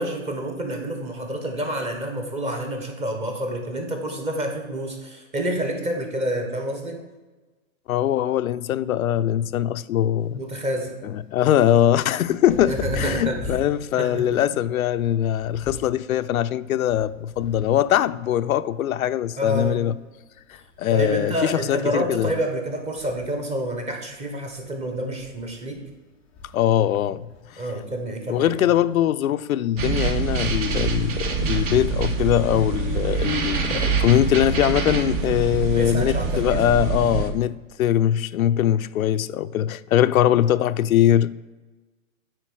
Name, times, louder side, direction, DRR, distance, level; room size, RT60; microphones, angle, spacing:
voice 1, 0.0-7.0 10.3-11.0 12.7-13.4 14.0-14.2 19.4-19.8 20.9-25.8 27.6-28.7 35.8-36.7, right 1 dB, 15° right, 1.1 m, -28 dB
voice 2, 7.9-10.4 11.0-19.9 20.5-22.3 26.5-27.3 27.5-27.6 28.3-41.4, left 11 dB, 85° left, 0.5 m, -22 dB
sound 1, 10.2-29.0, left 2 dB, 5° left, 0.4 m, -41 dB
sound 2, 29.8-37.3, right 4 dB, 40° right, 1.0 m, -25 dB
9.0 x 4.2 x 6.2 m
hypercardioid pair, 140°, 41 cm